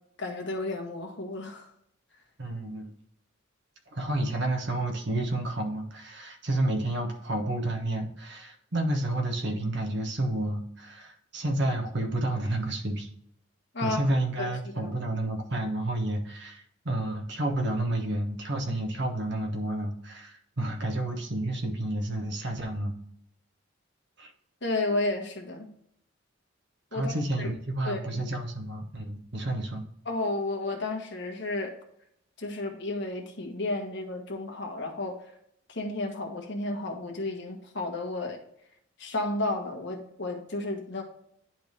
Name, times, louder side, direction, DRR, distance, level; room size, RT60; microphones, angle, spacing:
voice 1, 0.2-1.7 13.7-14.0 14.4-14.9 24.6-25.7 26.9-27.5 27.8-28.2 30.0-31.7 32.4-35.2 35.7-38.4 39.0-41.0, left 2 dB, 60° left, 3 dB, 1.3 m, -32 dB
voice 2, 2.4-2.9 3.9-13.1 13.8-22.9 24.2-24.3 26.9-29.8, right 1 dB, 60° right, 3 dB, 1.3 m, -30 dB
10.0 x 3.5 x 3.2 m, 0.72 s
head